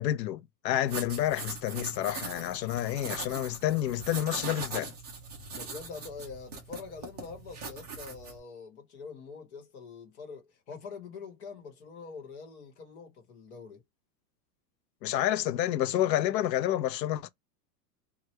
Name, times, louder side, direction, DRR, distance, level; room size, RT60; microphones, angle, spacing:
voice 1, 0.0-4.9 15.0-17.3, left 13 dB, 85° left, 0.7 m, -29 dB
sound 1, 0.8-8.4, right 4 dB, 25° right, 0.4 m, -41 dB
voice 2, 5.5-13.8, left 5 dB, 45° left, 1.3 m, -45 dB
2.9 x 2.4 x 3.1 m
supercardioid pair, 180°, 49 cm